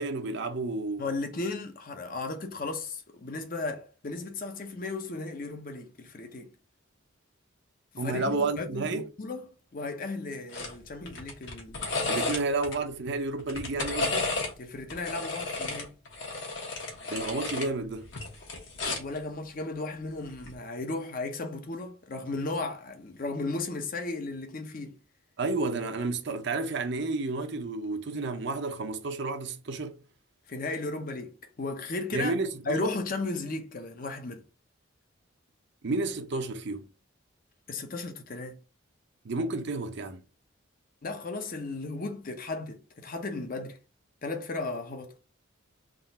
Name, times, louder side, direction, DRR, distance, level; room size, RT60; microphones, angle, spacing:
voice 1, 0.0-1.1 8.0-9.1 12.1-14.4 17.1-18.1 25.4-30.0 32.1-32.9 35.8-36.9 39.2-40.2, right 3 dB, 55° right, 0.6 m, -31 dB
voice 2, 1.0-6.5 7.9-11.8 12.2-12.4 14.6-16.0 18.9-25.0 30.5-32.3 32.7-34.4 37.7-38.6 41.0-43.8 44.2-45.1, left 3 dB, 45° left, 0.7 m, -35 dB
sound 1, 10.5-10.7 11.1-12.8 13.4-14.5 14.9-17.7 18.0-19.2 20.3-20.5, left 3 dB, 65° left, 1.3 m, -33 dB
3.7 x 2.4 x 4.1 m
head